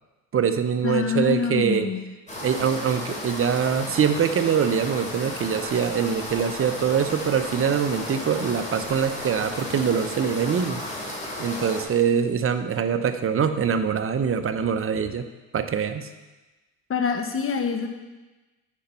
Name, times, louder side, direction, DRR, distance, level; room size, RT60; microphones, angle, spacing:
voice 1, 0.3-1.9 2.4-10.8 11.4-15.2 15.5-16.1, right 7 dB, 35° right, 9 dB, 0.8 m, -24 dB
voice 2, 0.8-2.0 16.9-17.9, left 5 dB, 35° left, 5 dB, 1.4 m, -25 dB
sound 1, 2.3-11.8, left 1 dB, 20° left, 3.0 m, -34 dB
8.5 x 5.4 x 5.6 m, 1.1 s
hypercardioid pair, 70°, 39 cm